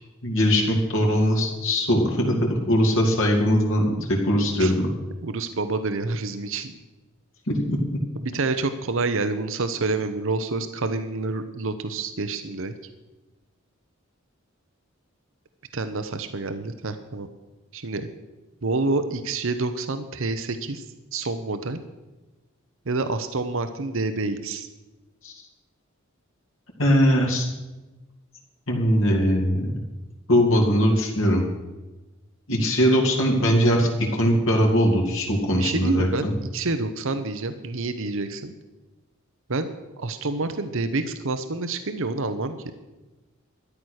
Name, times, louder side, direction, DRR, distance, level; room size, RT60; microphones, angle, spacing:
voice 1, 0.2-2.4 2.7-4.9 7.5-7.8 25.2-25.3 26.8-27.5 28.7-29.7 30.3-31.4 32.5-36.3, equal, 65° left, -1 dB, 2.6 m, -21 dB
voice 2, 5.2-6.7 8.2-12.7 15.7-17.3 17.7-18.1 18.6-20.8 21.1-21.8 22.9-24.7 35.6-36.3 36.5-38.5 39.5-39.7 40.0-42.5, right 3 dB, 65° right, 10 dB, 0.9 m, -28 dB
13.5 x 10.0 x 6.5 m, 1.1 s
head